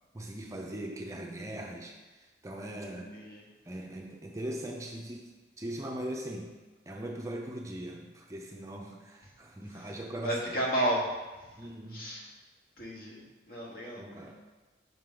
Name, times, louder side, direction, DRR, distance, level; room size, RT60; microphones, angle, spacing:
voice 1, 0.1-3.2 3.7-6.6 6.9-10.6 11.6-12.1 14.0-14.3, right 1 dB, 15° right, 1 dB, 0.4 m, -40 dB
voice 2, 10.2-11.1 11.9-12.2 12.8-13.2 13.5-14.0, right 1 dB, 55° left, -3 dB, 1.2 m, -31 dB
5.8 x 4.5 x 3.7 m, 1.2 s
head